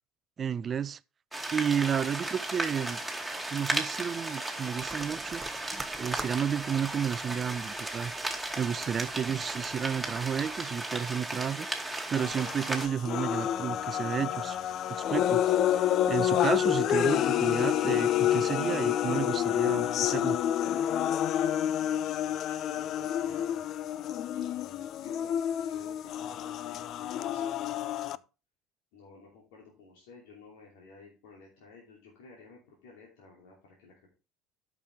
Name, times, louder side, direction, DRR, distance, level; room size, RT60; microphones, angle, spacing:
voice 1, 0.4-1.0 1.5-3.0 3.5-5.7 6.0-8.1 8.6-14.6 14.9-20.4, right 8 dB, 35° right, 0.4 m, -32 dB
sound 1, 1.3-12.9, right 2 dB, 5° right, 2.4 m, -35 dB
sound 2, 4.8-10.6, right 3 dB, 20° right, 1.0 m, -47 dB
sound 3, 12.2-28.2, left 11 dB, 50° left, 0.4 m, -28 dB
voice 2, 21.8-23.6 24.3-25.4 25.7-28.2 28.9-34.1, left 4 dB, 70° left, 2.8 m, -53 dB
13.0 x 6.0 x 3.4 m
figure-of-eight pair, 60°, 0 cm